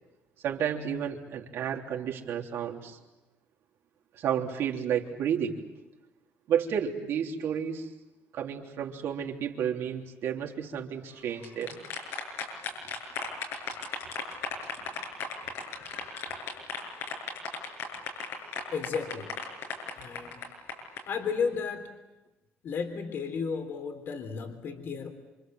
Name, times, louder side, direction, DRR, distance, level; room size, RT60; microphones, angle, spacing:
voice 1, 0.4-3.0 4.1-5.6 6.5-7.9 8.3-11.8, right 8 dB, 65° right, 1 dB, 3.4 m, -31 dB
sound 1, 11.2-21.0, left 5 dB, 80° left, 7.2 m, -36 dB
voice 2, 18.7-19.3 20.0-20.4 21.1-21.9 22.6-25.1, left 5 dB, 55° left, 5 dB, 3.6 m, -33 dB
28.0 x 26.5 x 7.8 m, 1.1 s
cardioid pair, 135°, 5 cm